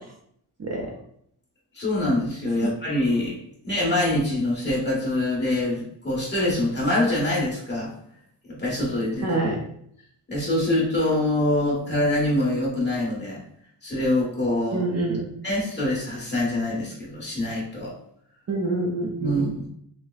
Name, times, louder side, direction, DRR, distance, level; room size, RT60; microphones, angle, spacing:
voice 1, 1.7-3.3 3.6-7.9 8.5-9.4 10.3-13.4 13.8-14.8 15.4-17.9 19.2-19.7, left 1 dB, 25° left, -5 dB, 1.4 m, -24 dB
voice 2, 9.2-9.6 14.7-15.3 18.5-19.4, right 2 dB, 35° right, -1 dB, 0.5 m, -26 dB
6.3 x 2.2 x 2.4 m, 0.68 s
wide cardioid pair, 160°, 44 cm